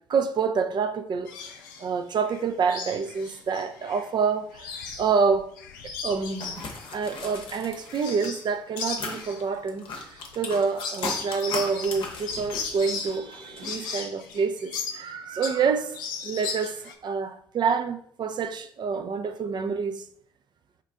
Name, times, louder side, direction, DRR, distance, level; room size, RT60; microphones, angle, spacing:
voice 1, 0.1-1.3 1.8-5.5 5.8-6.6 6.9-16.0 16.2-20.0, right 5 dB, 45° right, 0.4 m, -27 dB
sound 1, 1.3-1.9 2.3-4.1 4.4-8.5 8.8-15.7 15.9-16.9, left 5 dB, 80° left, 0.4 m, -36 dB
sound 2, 6.3-8.5 8.8-14.0, left 3 dB, 55° left, 0.7 m, -38 dB
4.4 x 2.4 x 3.5 m
figure-of-eight pair, 40°, 11 cm